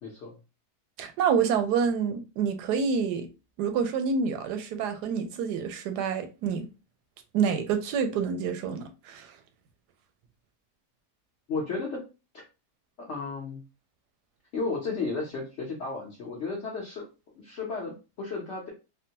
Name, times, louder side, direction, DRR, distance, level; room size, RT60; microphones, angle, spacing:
voice 1, 0.0-0.4 11.5-12.0 13.0-13.6 14.5-17.0 17.4-18.7, left 4 dB, 55° left, 0.9 m, -33 dB
voice 2, 1.0-3.3 3.6-6.7 7.3-9.3, right 6 dB, 85° right, 1.2 m, -27 dB
3.7 x 2.1 x 2.7 m
omnidirectional pair, 1.7 m